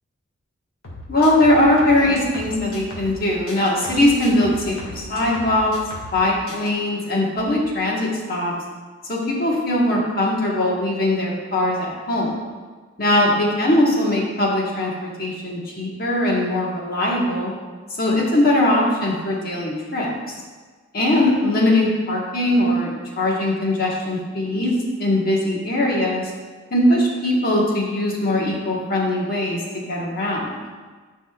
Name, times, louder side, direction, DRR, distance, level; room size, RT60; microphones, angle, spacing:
sound 1, 0.8-3.2 3.5-6.2 6.5-6.7, left 1 dB, 90° left, 2.0 m, -37 dB
voice 1, 1.1-5.8 6.1-8.5 9.1-12.3 13.0-17.5 18.0-20.1 20.9-26.3 26.7-30.6, left 1 dB, 45° left, -3 dB, 1.4 m, -20 dB
10.5 x 5.3 x 2.4 m, 1.4 s
head